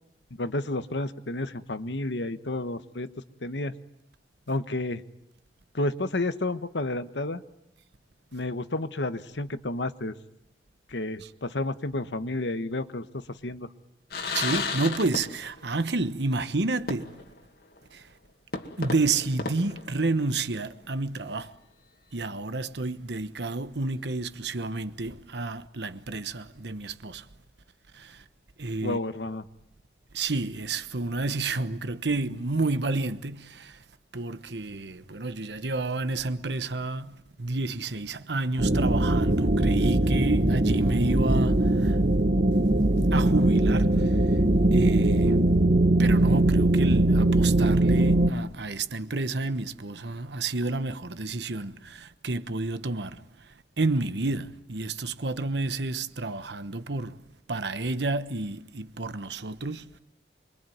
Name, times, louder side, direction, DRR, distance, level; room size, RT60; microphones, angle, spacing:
voice 1, 0.3-3.1 3.4-3.7 4.5-5.0 5.7-7.4 8.3-10.1 10.9-13.7 28.8-29.4, left 2 dB, 90° left, 1.2 m, -31 dB
sound 1, 14.1-15.7 16.0-16.1 16.9-17.4 17.8-17.9 18.5-20.5, left 4 dB, 60° left, 2.2 m, -33 dB
voice 2, 14.3-17.2 17.9-18.1 18.8-21.5 22.1-27.3 27.9-28.2 28.6-29.0 30.1-33.8 34.1-42.1 42.5-44.4 44.7-45.4 46.0-53.2 53.8-57.2 57.5-60.0, right 3 dB, 75° right, 1.2 m, -30 dB
sound 2, 38.6-48.3, right 1 dB, 50° right, 1.2 m, -21 dB
26.0 x 23.5 x 9.4 m
head